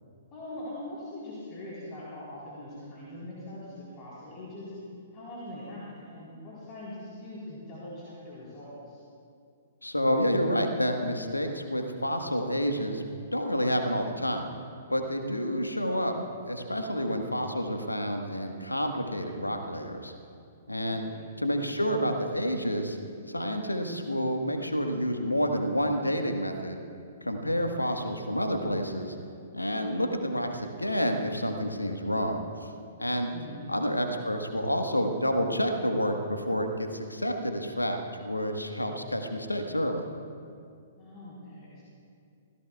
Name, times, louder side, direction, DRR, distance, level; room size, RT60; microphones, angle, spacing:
voice 1, 0.3-4.7 5.1-9.0 20.9-21.3 33.3-33.6 41.0-41.8, left 1 dB, 25° left, -8 dB, 3.9 m, -42 dB
voice 2, 9.8-13.0 13.3-14.5 14.9-16.2 16.5-20.1 20.7-21.1 21.4-23.0 23.3-26.8 27.2-29.1 29.5-32.7 33.0-33.3 33.7-40.0, equal, 85° left, 5 dB, 1.4 m, -29 dB
27.0 x 17.0 x 2.4 m, 2.4 s
figure-of-eight pair, 115°, 0 cm